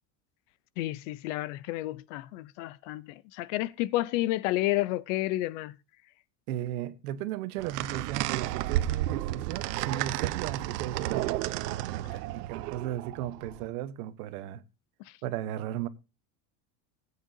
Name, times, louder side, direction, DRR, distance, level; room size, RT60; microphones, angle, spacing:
voice 1, 0.8-3.0 3.3-5.7, left 16 dB, 50° left, 0.7 m, -30 dB
voice 2, 6.5-11.3 11.9-14.6 15.2-15.9, right 12 dB, 65° right, 1.3 m, -36 dB
sound 1, 7.6-13.7, right 15 dB, 80° right, 1.0 m, -32 dB
19.5 x 8.7 x 2.7 m
supercardioid pair, 165°, 47 cm